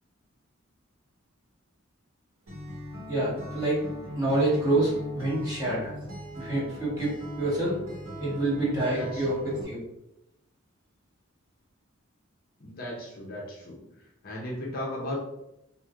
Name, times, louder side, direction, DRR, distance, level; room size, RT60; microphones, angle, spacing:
Acoustic guitar, 2.5-9.6, left 1 dB, 90° right, 1.2 m, -39 dB
voice 1, 3.1-3.8 4.2-5.9 6.4-7.8 8.2-9.8, right 1 dB, 20° right, -9 dB, 1.2 m, -27 dB
voice 2, 8.8-9.2 9.5-9.7 12.6-13.9 14.2-15.2, left 1 dB, 45° left, -3 dB, 0.6 m, -36 dB
3.0 x 2.4 x 2.4 m, 0.86 s
head